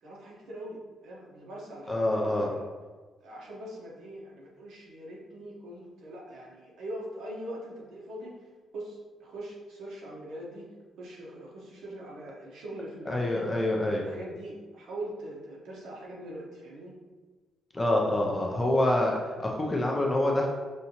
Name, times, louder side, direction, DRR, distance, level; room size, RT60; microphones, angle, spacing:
voice 1, 0.0-2.6 3.2-8.3 8.7-10.7 11.0-13.5 13.8-16.9, right 1 dB, 70° right, -3 dB, 1.0 m, -42 dB
voice 2, 1.9-2.5 13.1-14.0 17.7-20.5, left 1 dB, 15° left, -1 dB, 0.4 m, -26 dB
5.5 x 2.6 x 2.8 m, 1.3 s
cardioid pair, 175°, 0 cm